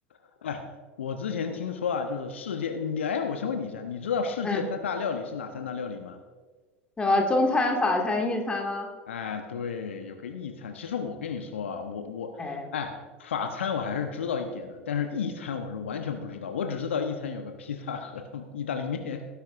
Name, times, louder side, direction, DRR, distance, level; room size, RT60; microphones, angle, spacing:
voice 1, 1.0-6.2 9.1-19.2, left 6 dB, 70° left, 6 dB, 0.9 m, -32 dB
voice 2, 7.0-8.9 12.4-12.7, left 2 dB, 15° left, 1 dB, 2.0 m, -25 dB
18.0 x 10.0 x 2.5 m, 1.4 s
figure-of-eight pair, 80°, 7 cm